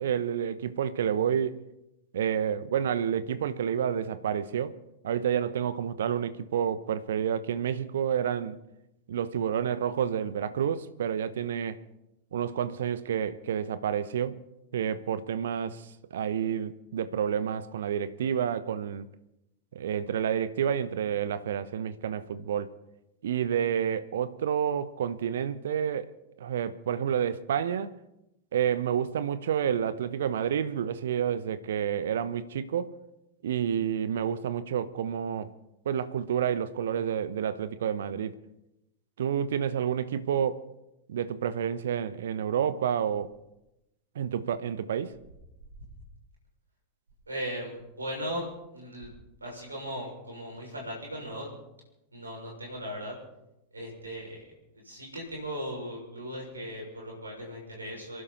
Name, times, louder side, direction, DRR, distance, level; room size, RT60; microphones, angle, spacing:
voice 1, 0.0-1.6 2.1-4.8 5.0-8.5 9.1-11.8 12.3-14.4 14.7-15.8 16.1-19.1 19.7-22.7 23.2-26.1 26.4-27.9 28.5-32.9 33.4-35.5 35.8-38.4 39.2-40.6 41.1-43.3 44.1-45.1, right 8 dB, 60° right, 1.0 m, -29 dB
voice 2, 47.3-49.1 49.4-51.5 52.1-53.1 53.7-58.2, equal, 80° right, 6.5 m, -38 dB
28.0 x 11.5 x 4.3 m
figure-of-eight pair, 90°, 0 cm